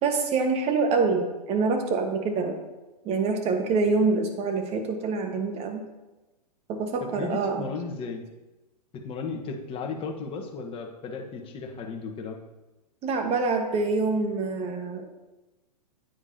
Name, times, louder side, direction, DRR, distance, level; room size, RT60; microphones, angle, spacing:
voice 1, 0.0-2.6 3.0-5.8 6.7-7.7 13.0-15.1, right 4 dB, 30° right, 4 dB, 1.5 m, -26 dB
voice 2, 7.0-8.2 8.9-12.4, left 4 dB, 25° left, 2 dB, 1.3 m, -35 dB
9.6 x 9.2 x 2.9 m, 1.1 s
hypercardioid pair, 115°, 21 cm